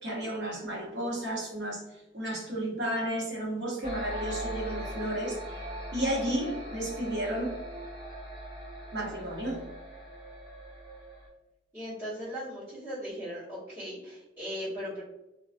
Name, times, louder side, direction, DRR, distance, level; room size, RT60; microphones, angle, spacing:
voice 1, 0.0-1.8 2.1-5.6 5.9-7.5 8.9-9.6, right 1 dB, 75° right, -3 dB, 0.9 m, -32 dB
sound 1, 3.8-11.3, right 1 dB, 40° right, 1.4 m, -40 dB
voice 2, 11.7-15.0, equal, 20° right, -13 dB, 1.0 m, -38 dB
2.3 x 2.2 x 2.4 m, 0.97 s
head